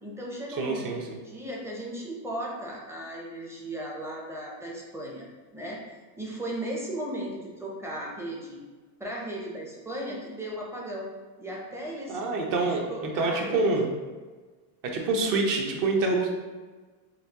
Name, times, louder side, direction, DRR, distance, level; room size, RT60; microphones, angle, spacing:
voice 1, 0.0-5.3 5.5-5.8 6.2-8.6 9.0-11.1 11.4-12.2 12.9-13.6, right 1 dB, 5° right, -3 dB, 0.5 m, -36 dB
voice 2, 0.6-1.0 12.1-13.9 14.8-16.3, right 3 dB, 45° right, 1 dB, 0.7 m, -26 dB
4.1 x 2.6 x 2.8 m, 1.3 s
supercardioid pair, 130°, 46 cm